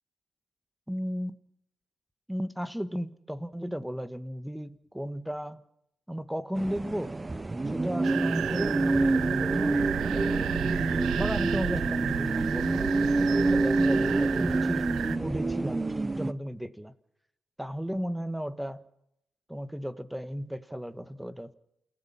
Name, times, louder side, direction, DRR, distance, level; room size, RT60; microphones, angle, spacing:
voice 1, 0.9-1.4 2.3-5.6 6.1-7.1 7.7-10.5 11.2-16.9 17.6-18.9 19.5-21.5, equal, 5° right, 12 dB, 1.5 m, -35 dB
sound 1, 6.6-16.3, right 2 dB, 25° right, 0.8 m, -27 dB
sound 2, 8.0-15.2, right 11 dB, 80° right, 0.7 m, -33 dB
28.5 x 17.0 x 5.8 m, 0.79 s
cardioid pair, 70°, 0 cm